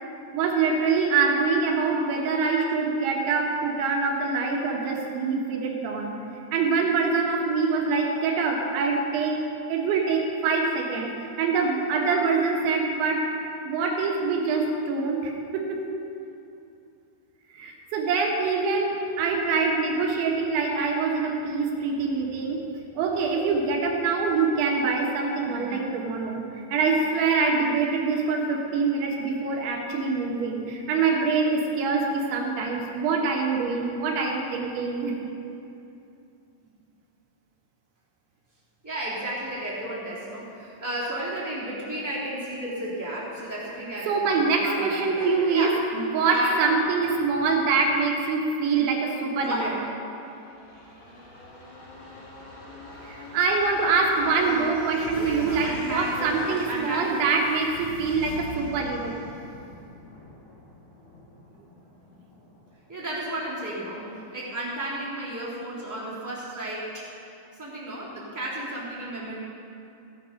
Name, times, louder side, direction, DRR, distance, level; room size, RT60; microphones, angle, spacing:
voice 1, 0.3-6.2 6.5-9.4 9.7-13.3 13.7-16.0 17.5-22.6 23.0-26.4 26.7-35.1 44.1-49.8 53.1-59.2, right 4 dB, 80° right, 0 dB, 3.9 m, -25 dB
voice 2, 25.4-25.9 38.8-45.8 46.2-46.6 48.6-48.9 49.4-49.8 54.2-54.7 55.1-57.2 62.9-67.1 67.6-69.4, right 1 dB, 5° right, -9 dB, 2.7 m, -33 dB
sound 1, 50.0-63.5 63.8-63.9, left 1 dB, 70° left, 5.2 m, -43 dB
16.0 x 11.0 x 5.2 m, 2.6 s
omnidirectional pair, 5.2 m